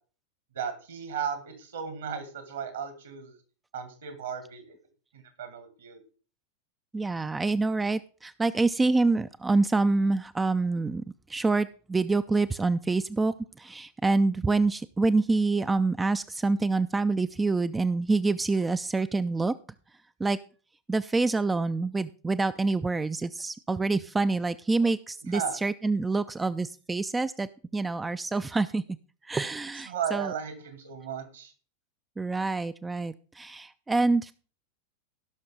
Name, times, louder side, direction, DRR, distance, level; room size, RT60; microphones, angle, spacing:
voice 1, 0.5-3.4 3.7-4.8 5.1-6.0 25.3-25.6 29.9-31.5, right 7 dB, 65° right, 9 dB, 2.1 m, -35 dB
voice 2, 6.9-11.0 11.3-19.5 20.2-20.4 20.9-28.8 29.3-30.3 32.2-34.3, right 3 dB, 10° right, 13 dB, 0.4 m, -26 dB
17.0 x 6.0 x 3.8 m, 0.38 s
figure-of-eight pair, 90°, 0 cm